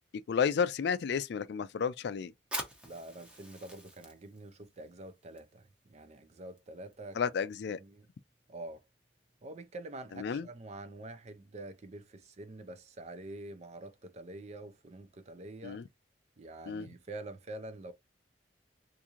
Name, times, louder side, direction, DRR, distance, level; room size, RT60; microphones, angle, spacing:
voice 1, 0.3-2.3 7.2-7.8 10.2-10.5 15.6-15.8 16.7-16.9, left 6 dB, 60° left, 0.3 m, -31 dB
Fire, 2.4-9.6, right 1 dB, 5° right, 0.7 m, -48 dB
voice 2, 2.8-7.2 7.7-8.1 8.5-8.8 9.4-15.8 16.4-17.9, right 2 dB, 35° right, 0.5 m, -46 dB
3.6 x 2.6 x 2.9 m
head